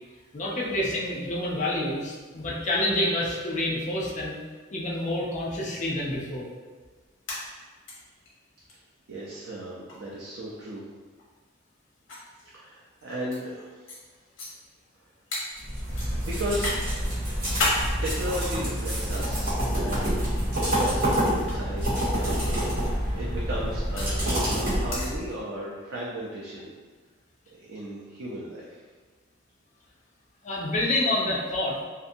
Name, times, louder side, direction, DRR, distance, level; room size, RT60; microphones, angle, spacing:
voice 1, 0.3-4.4 4.7-6.5 30.4-31.8, left 1 dB, 35° left, -4 dB, 0.4 m, -28 dB
sound 1, 7.1-7.9 8.3-8.4 8.7-8.8 9.9-10.1 11.2-11.3 12.1-13.4 13.9-14.0 14.4-14.5 15.3-15.4 16.0-16.8 17.2-17.8 18.7-19.4 20.4-20.7 21.4-21.5 22.9-24.2 24.9-25.1, left 2 dB, 70° left, 0.8 m, -31 dB
voice 2, 9.1-10.8 12.5-13.9 16.2-16.7 17.8-26.7 27.5-28.8, right 1 dB, 90° right, -5 dB, 0.4 m, -35 dB
sound 2, 15.6-25.3, equal, 45° right, 1.3 m, -27 dB
2.6 x 2.5 x 2.6 m, 1.4 s
head